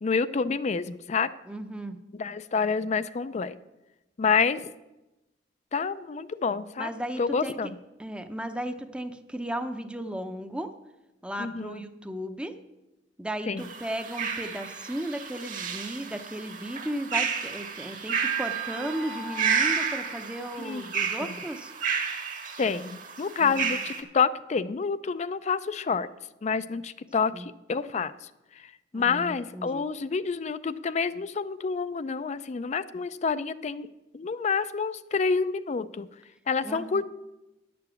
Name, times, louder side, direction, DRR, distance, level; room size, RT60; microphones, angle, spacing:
voice 1, 0.0-1.3 2.2-3.6 4.2-4.6 5.7-6.9 7.2-7.7 11.4-11.8 13.5-13.7 20.6-20.9 21.2-21.4 22.6-26.1 26.4-33.9 34.1-36.1 36.5-37.0, left 5 dB, 40° left, 15 dB, 0.4 m, -28 dB
voice 2, 1.5-2.0 6.8-7.6 8.0-10.7 11.2-12.6 13.2-21.7 23.4-23.8 27.3-27.5 28.9-29.9 36.6-37.0, right 1 dB, 5° right, 8 dB, 0.6 m, -35 dB
sound 1, 13.6-24.0, right 6 dB, 50° right, 1.3 m, -31 dB
10.5 x 6.9 x 7.0 m, 0.99 s
head